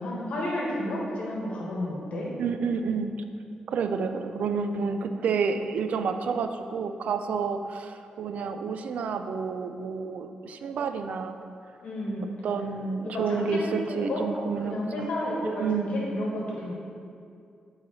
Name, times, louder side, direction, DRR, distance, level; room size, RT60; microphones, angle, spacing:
voice 1, 0.0-2.3 11.8-12.3 13.0-13.6 13.9-14.2 14.6-15.6 15.9-16.7, left 1 dB, 65° left, -4 dB, 1.7 m, -31 dB
voice 2, 2.4-3.1 3.7-11.4 12.4-15.1 15.4-16.0, right 5 dB, 70° right, 8 dB, 0.4 m, -29 dB
7.4 x 4.8 x 4.1 m, 2.4 s
wide cardioid pair, 150°, 2 cm